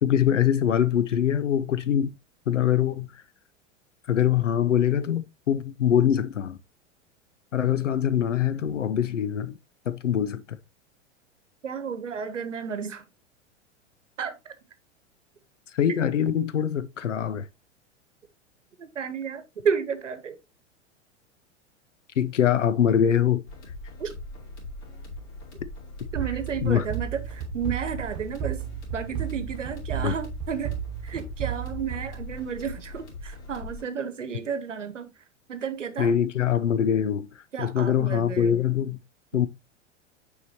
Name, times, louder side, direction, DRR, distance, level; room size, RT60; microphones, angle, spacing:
voice 1, 0.0-2.1 2.5-3.1 4.1-6.6 7.5-9.6 9.9-10.6 15.7-17.5 22.2-23.4 26.6-26.8 30.0-30.1 36.0-37.3 37.6-39.0 39.3-39.5, left 9 dB, 85° left, 0.7 m, -23 dB
voice 2, 11.6-13.1 14.2-14.3 18.8-20.4 24.0-24.1 26.1-28.6 28.9-30.7 31.0-35.1 35.5-36.1 37.5-38.6, right 6 dB, 85° right, 1.0 m, -32 dB
sound 1, 23.5-33.8, left 1 dB, 55° left, 3.4 m, -41 dB
sound 2, 26.2-32.8, right 11 dB, 45° right, 1.1 m, -34 dB
6.7 x 4.9 x 2.9 m
figure-of-eight pair, 95°, 36 cm